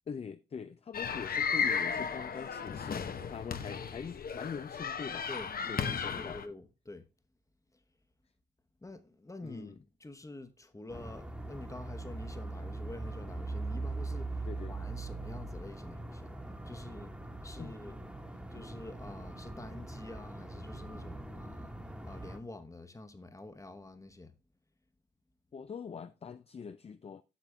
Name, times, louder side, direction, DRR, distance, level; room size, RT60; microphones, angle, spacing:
voice 1, 0.1-5.3 5.6-6.4 9.4-9.8 14.5-14.8 17.6-17.7 25.5-27.2, left 6 dB, 35° left, 0.4 m, -43 dB
sound 1, 0.9-6.5, left 6 dB, 55° left, 0.8 m, -35 dB
voice 2, 5.3-7.1 8.8-16.3 16.6-17.1 17.4-18.0 18.5-21.7 22.0-24.3, left 2 dB, 15° left, 1.0 m, -47 dB
sound 2, 10.9-22.4, right 2 dB, 5° right, 1.3 m, -41 dB
8.4 x 5.9 x 3.2 m
cardioid pair, 75°, 18 cm